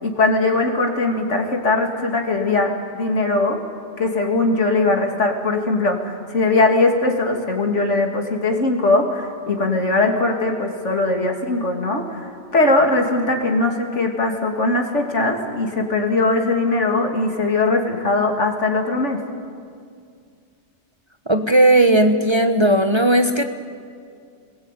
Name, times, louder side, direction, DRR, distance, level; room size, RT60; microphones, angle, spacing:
voice 1, 0.0-3.6 4.0-19.2, left 2 dB, 75° left, 3 dB, 3.0 m, -20 dB
voice 2, 21.3-23.4, right 1 dB, 25° right, 6 dB, 1.1 m, -16 dB
27.5 x 20.0 x 9.2 m, 2.3 s
omnidirectional pair, 1.2 m